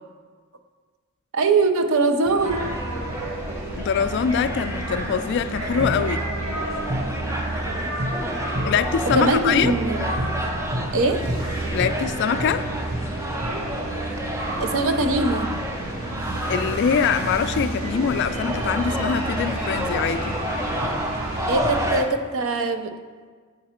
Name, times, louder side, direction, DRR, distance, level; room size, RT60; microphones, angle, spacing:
voice 1, 1.3-2.7 9.1-10.0 10.9-11.3 14.6-15.5 21.5-23.0, right 3 dB, 65° right, 7 dB, 0.6 m, -22 dB
sound 1, 2.2-22.0, right 1 dB, 15° right, 0.5 m, -30 dB
sound 2, 2.4-21.9, right 1 dB, 90° right, 1.6 m, -30 dB
voice 2, 3.7-6.2 8.6-9.7 11.7-12.7 16.5-20.3, left 7 dB, 55° left, 12 dB, 0.3 m, -23 dB
8.6 x 3.9 x 4.3 m, 1.5 s
head